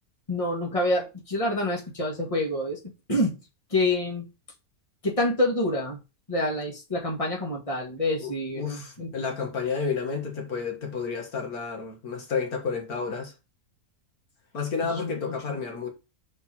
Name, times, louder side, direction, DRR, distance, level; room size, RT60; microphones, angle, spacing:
voice 1, 0.3-2.8 3.1-3.4 3.7-4.2 5.0-6.0 6.3-9.1 14.9-15.6, left 1 dB, 20° left, 2.0 m, -27 dB
voice 2, 8.2-13.3 14.5-15.9, left 5 dB, 80° left, 2.1 m, -31 dB
4.7 x 4.6 x 5.5 m
omnidirectional pair, 1.5 m